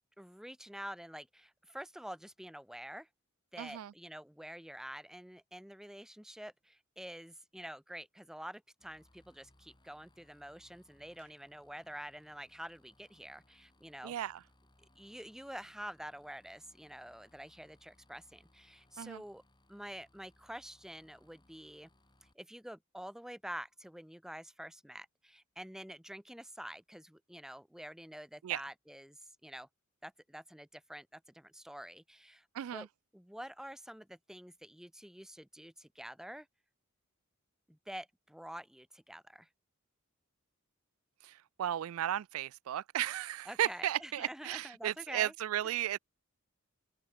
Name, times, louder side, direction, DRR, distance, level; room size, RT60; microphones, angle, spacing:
voice 1, 0.2-3.1 3.5-14.1 14.9-19.4 19.7-21.9 22.2-29.7 30.0-32.5 32.7-32.9 33.1-36.5 37.7-39.5 43.5-45.3, equal, ahead, 1.0 m, -48 dB
voice 2, 3.6-3.9 14.0-14.4 19.0-19.2 28.4-28.6 32.5-32.9 41.2-46.0, right 11 dB, 80° right, 0.3 m, -35 dB
sound 1, 8.8-22.3, left 1 dB, 20° left, 7.9 m, -69 dB
open air
head